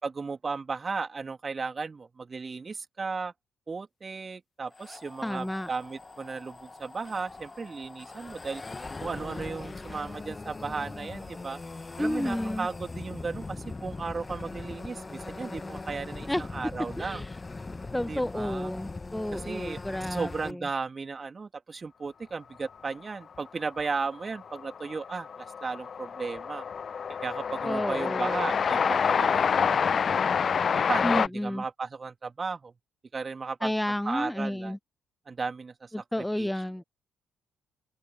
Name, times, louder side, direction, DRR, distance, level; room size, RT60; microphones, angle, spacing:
voice 1, 0.0-3.3 3.7-8.6 9.0-11.6 12.0-17.3 18.1-18.7 19.3-26.6 27.2-30.1 30.9-32.7 33.1-34.8 35.3-35.9 36.2-36.5, right 4 dB, 35° right, 2.9 m, -35 dB
sound 1, 4.7-20.5, left 3 dB, 25° left, 1.4 m, -41 dB
voice 2, 5.2-5.7 12.0-12.7 16.3-16.4 17.0-17.3 17.9-20.6 27.6-28.4 31.0-31.6 33.6-34.8 35.9-36.8, left 1 dB, 5° left, 0.8 m, -31 dB
Train, 23.8-23.9 24.1-31.3, left 6 dB, 45° left, 0.6 m, -27 dB
figure-of-eight pair, 45°, 0 cm